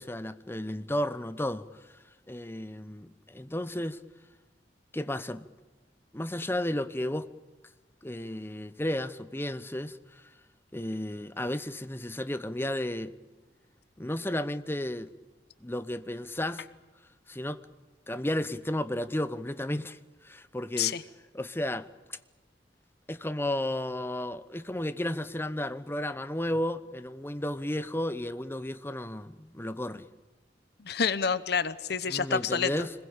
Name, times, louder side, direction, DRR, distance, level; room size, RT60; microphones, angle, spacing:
voice 1, 0.0-1.6 2.3-4.0 4.9-5.5 6.1-7.3 8.0-10.2 10.7-13.1 14.0-15.1 15.6-16.6 17.3-17.6 18.1-20.0 20.2-20.9 21.3-21.9 23.1-30.1 32.1-32.9, left 1 dB, 15° left, 0.9 m, -33 dB
voice 2, 30.8-32.9, left 6 dB, 65° left, 0.9 m, -28 dB
26.0 x 21.0 x 8.8 m
head